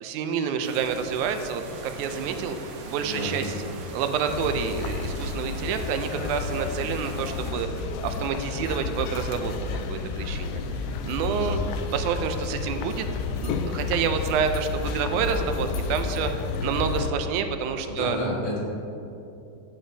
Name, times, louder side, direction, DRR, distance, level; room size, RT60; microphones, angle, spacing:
voice 1, 0.0-2.6 2.9-3.5 3.9-11.6 11.9-13.1 13.4-18.2, right 7 dB, 85° right, 7 dB, 2.1 m, -28 dB
sound 1, 0.6-7.5, right 2 dB, 65° right, 1.9 m, -40 dB
voice 2, 3.0-3.7 11.2-11.6 17.9-18.6, left 1 dB, 50° left, -6 dB, 2.4 m, -31 dB
sound 2, 4.3-17.1, left 4 dB, 85° left, 2.0 m, -31 dB
14.5 x 7.8 x 2.7 m, 2.7 s
omnidirectional pair, 3.4 m